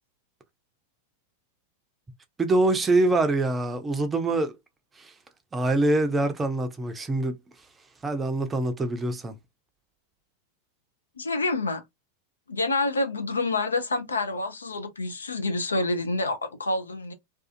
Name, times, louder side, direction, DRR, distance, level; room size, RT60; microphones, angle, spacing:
voice 1, 2.4-4.5 5.0-5.1 5.5-7.3 8.0-9.3, right 2 dB, 15° right, 0.5 m, -24 dB
voice 2, 11.2-11.8 12.5-17.1, left 2 dB, 75° left, 0.5 m, -27 dB
2.4 x 2.4 x 2.4 m
figure-of-eight pair, 90°, 0 cm